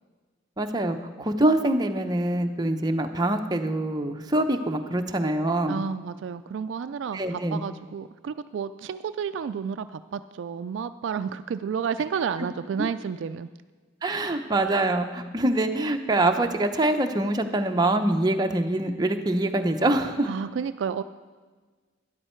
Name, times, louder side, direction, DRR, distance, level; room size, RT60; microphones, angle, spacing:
voice 1, 0.6-5.8 7.1-7.6 12.8-12.9 14.0-20.3, right 1 dB, 20° right, 5 dB, 0.7 m, -24 dB
voice 2, 5.7-13.5 20.3-21.0, right 6 dB, 65° right, 12 dB, 0.3 m, -31 dB
12.5 x 10.5 x 4.4 m, 1.4 s
head